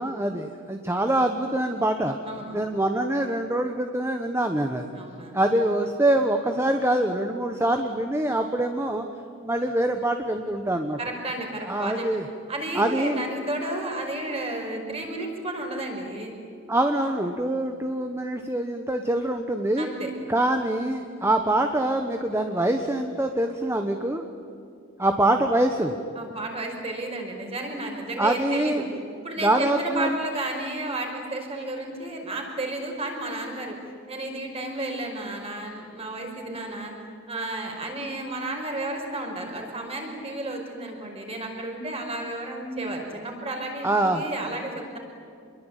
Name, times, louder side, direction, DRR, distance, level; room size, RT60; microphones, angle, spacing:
voice 1, 0.0-2.2 2.5-4.9 5.3-9.1 9.4-11.0 11.6-12.3 12.7-13.2 16.7-19.9 20.3-24.2 25.0-25.9 28.2-28.8 29.4-30.2 43.8-44.2, right 1 dB, 10° right, 5 dB, 1.2 m, -24 dB
voice 2, 2.3-2.7 4.9-5.3 11.0-12.1 12.5-16.3 19.8-20.1 26.2-28.8 29.2-33.8 34.1-36.9 37.3-45.0, right 2 dB, 30° right, 2 dB, 5.4 m, -32 dB
27.5 x 22.0 x 9.2 m, 2.4 s
head